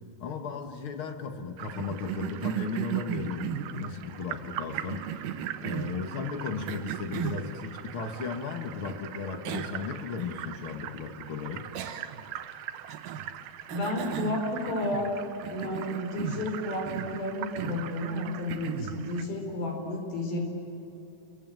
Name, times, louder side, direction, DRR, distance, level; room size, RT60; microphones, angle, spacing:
voice 1, 0.2-5.1 5.6-11.7, left 5 dB, 45° left, 6 dB, 1.9 m, -35 dB
sound 1, 1.6-19.2, right 12 dB, 85° right, 2.9 m, -42 dB
Cough, 1.8-4.0 4.7-6.0 6.7-7.5 8.8-9.0 9.4-9.8 10.2-10.3 11.7-12.3 12.9-13.3 13.7-15.1 15.4-16.5 16.9-17.2 17.6-17.9 18.5-19.0, right 10 dB, 65° right, 2.8 m, -35 dB
voice 2, 13.7-15.1 15.5-20.4, left 1 dB, 75° left, 3 dB, 6.0 m, -32 dB
29.0 x 22.0 x 9.1 m, 2.9 s
omnidirectional pair, 4.3 m